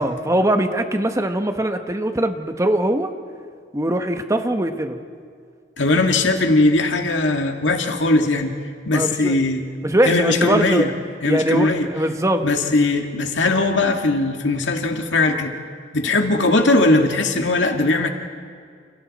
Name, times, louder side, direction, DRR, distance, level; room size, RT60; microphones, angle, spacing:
voice 1, 0.0-3.1 3.7-5.0 8.9-9.4 9.8-10.9 11.2-12.5, right 1 dB, 15° right, 6 dB, 1.2 m, -21 dB
voice 2, 5.8-8.5 8.9-9.6 10.0-10.9 11.2-11.9 12.4-15.5 15.9-18.1, left 2 dB, 85° left, 4 dB, 2.1 m, -19 dB
29.5 x 29.0 x 4.3 m, 2.1 s
head